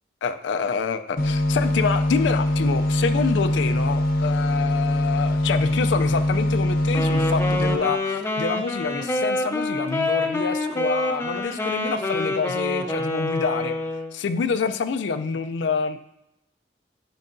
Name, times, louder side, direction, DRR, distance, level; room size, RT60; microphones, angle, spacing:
voice 1, 0.2-13.7 14.1-16.0, left 5 dB, 85° left, 9 dB, 0.4 m, -27 dB
sound 1, 1.2-7.8, left 1 dB, 55° left, 0.7 m, -22 dB
Wind instrument woodwind instrument, 6.9-14.1, left 2 dB, 15° left, 0.5 m, -26 dB
9.1 x 5.3 x 2.6 m, 0.83 s
head